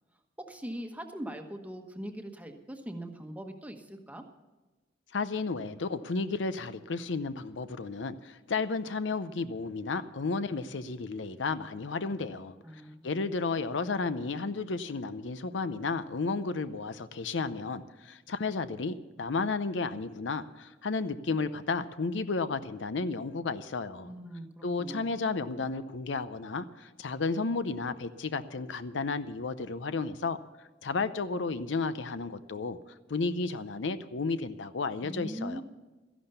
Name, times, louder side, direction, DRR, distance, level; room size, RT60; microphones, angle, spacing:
voice 1, 0.4-4.2 12.6-13.1 24.0-25.1 35.0-35.6, equal, 10° right, 4 dB, 1.1 m, -41 dB
voice 2, 5.1-12.5 13.0-24.1 24.6-32.8 33.1-35.6, left 4 dB, 70° left, 13 dB, 0.6 m, -33 dB
13.5 x 11.0 x 6.8 m, 1.2 s
head